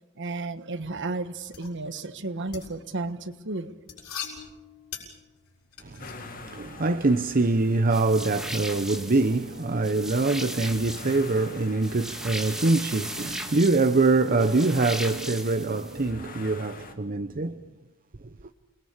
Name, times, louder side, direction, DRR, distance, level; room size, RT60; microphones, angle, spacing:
voice 1, 0.2-3.7, right 2 dB, 60° right, 1.4 m, -33 dB
sound 1, 0.9-6.1, left 7 dB, 85° left, 6.3 m, -42 dB
voice 2, 5.8-17.6, right 3 dB, 40° right, 0.8 m, -24 dB
sound 2, 6.0-16.9, left 3 dB, 40° left, 2.0 m, -48 dB
sound 3, 7.9-16.1, right 1 dB, 5° right, 1.7 m, -37 dB
29.0 x 21.0 x 7.4 m
head